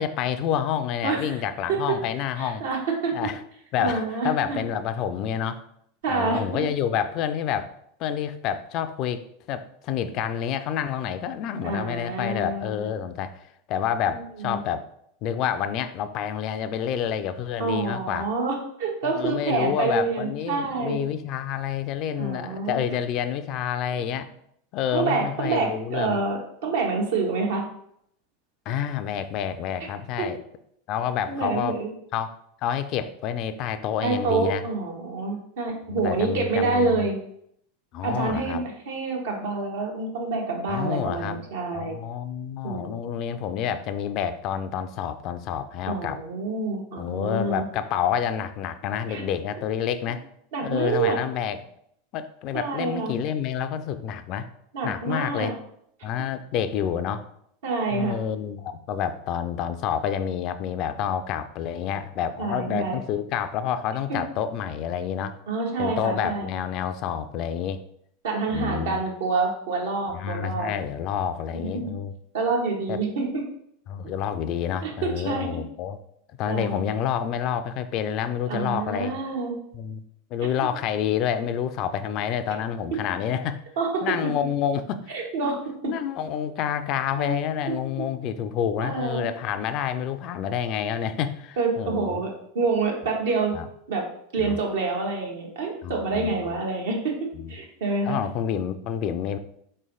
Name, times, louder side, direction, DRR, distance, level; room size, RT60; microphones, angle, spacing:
voice 1, 0.0-2.6 3.1-3.4 3.7-5.6 6.1-7.7 8.0-13.4 13.7-14.9 15.2-18.3 19.0-24.3 24.7-26.2 28.7-30.4 30.9-31.8 32.1-32.3 32.6-34.6 35.9-37.1 37.9-38.6 40.7-41.4 41.7-46.2 47.0-50.2 50.6-51.6 52.1-54.5 54.8-55.5 56.0-57.3 57.9-65.4 65.8-67.8 68.5-69.0 70.1-72.1 72.9-73.0 73.9-76.0 76.4-79.2 79.7-80.0 80.3-83.6 84.0-85.5 85.9-92.2 93.5-93.7 94.4-94.6 95.8-96.6 97.3-97.5 98.0-99.4, left 9 dB, 50° left, 11 dB, 0.4 m, -28 dB
voice 2, 1.0-1.3 1.7-2.0 2.4-3.1 3.8-4.6 6.0-6.6 11.6-12.8 14.0-14.6 17.6-21.0 22.2-22.8 24.9-27.6 30.2-30.3 31.3-31.9 34.0-37.2 38.0-42.0 42.6-43.0 45.9-47.6 49.1-49.2 50.5-51.2 52.5-53.1 54.7-55.5 57.6-58.1 62.4-63.0 64.1-64.2 65.5-66.5 68.2-70.7 71.5-71.7 72.3-73.4 74.8-75.6 76.5-76.8 78.5-79.5 83.8-84.2 85.1-85.6 87.2-87.4 88.8-89.3 91.6-93.5 93.9-94.0 94.3-97.1 97.5-98.2, right 4 dB, 70° right, 0 dB, 1.1 m, -27 dB
4.0 x 3.2 x 3.7 m, 0.72 s
hypercardioid pair, 90°, 0 cm